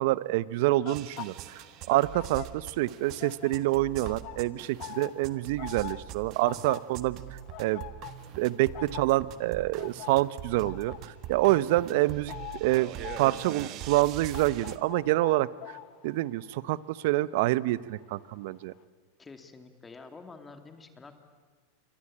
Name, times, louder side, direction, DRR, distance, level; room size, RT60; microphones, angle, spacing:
voice 1, 0.0-7.2 7.6-7.8 8.4-12.9 13.2-15.8 16.0-18.7, right 17 dB, 65° right, 19 dB, 0.8 m, -27 dB
sound 1, 0.7-2.9 3.2-18.0 18.3-18.6, left 15 dB, 50° left, 1.3 m, -45 dB
sound 2, 0.9-14.8, right 12 dB, 50° right, 1.5 m, -43 dB
voice 2, 19.2-21.2, left 4 dB, 15° left, 7 dB, 2.6 m, -48 dB
28.0 x 24.0 x 8.8 m, 1.5 s
hypercardioid pair, 110°, 0 cm